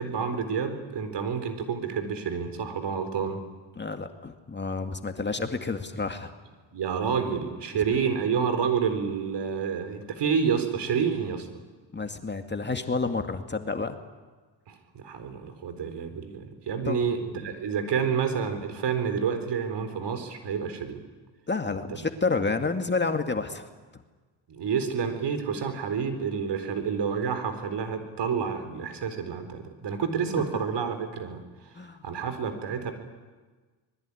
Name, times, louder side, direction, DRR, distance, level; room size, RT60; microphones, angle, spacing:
voice 1, 0.0-3.4 6.7-11.5 14.7-21.0 24.5-31.4 32.0-32.9, right 6 dB, 55° right, 9 dB, 4.4 m, -29 dB
voice 2, 3.8-6.3 11.9-14.0 16.9-17.0 21.5-23.7 31.7-32.0, left 3 dB, 20° left, 7 dB, 2.2 m, -29 dB
25.5 x 21.0 x 10.0 m, 1.4 s
supercardioid pair, 70°, 49 cm